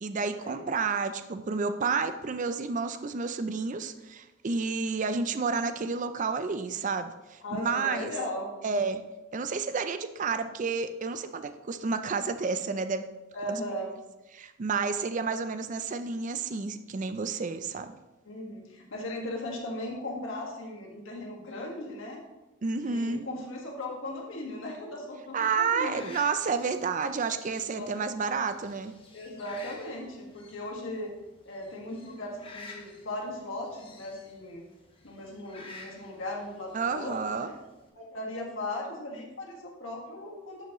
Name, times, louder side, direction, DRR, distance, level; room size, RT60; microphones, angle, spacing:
voice 1, 0.0-8.1 8.6-9.0 9.3-13.1 14.3-17.9 22.6-23.2 25.3-28.9 36.7-37.5, right 4 dB, 40° right, 10 dB, 0.4 m, -30 dB
voice 2, 7.4-8.9 13.3-13.9 18.3-22.2 22.8-26.1 27.7-28.1 29.1-31.1 31.5-34.6 35.0-37.6 38.0-40.6, left 1 dB, 75° left, -1 dB, 1.7 m, -38 dB
sound 1, 25.6-37.9, left 3 dB, 25° left, 1.1 m, -52 dB
11.0 x 5.7 x 3.0 m, 1.1 s
head